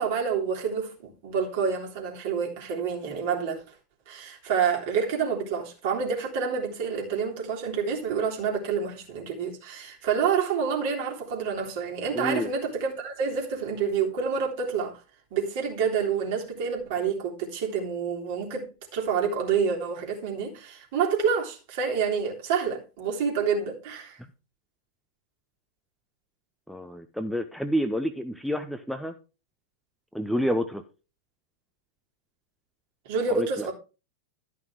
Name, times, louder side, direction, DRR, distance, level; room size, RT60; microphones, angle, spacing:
voice 1, 0.0-3.6 4.1-15.0 15.3-18.7 18.9-24.2 33.1-33.7, right 6 dB, 50° right, 3.4 m, -28 dB
voice 2, 12.1-12.5 26.7-29.1 30.1-30.8 33.3-33.7, equal, ahead, 0.9 m, -29 dB
12.5 x 5.9 x 4.7 m
figure-of-eight pair, 90°, 0 cm